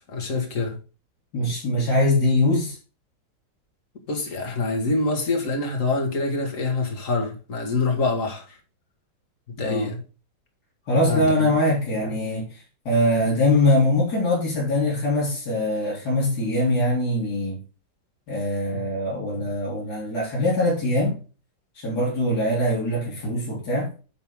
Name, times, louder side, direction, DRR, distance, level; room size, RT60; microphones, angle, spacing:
voice 1, 0.1-0.8 4.1-8.6 9.5-10.0 11.1-11.5, left 3 dB, 45° left, 2.5 m, -25 dB
voice 2, 1.3-2.7 9.6-9.9 10.9-12.5 12.9-17.6 18.3-21.2 21.8-23.9, left 1 dB, 60° left, 4.4 m, -22 dB
10.5 x 5.4 x 3.8 m
omnidirectional pair, 1.9 m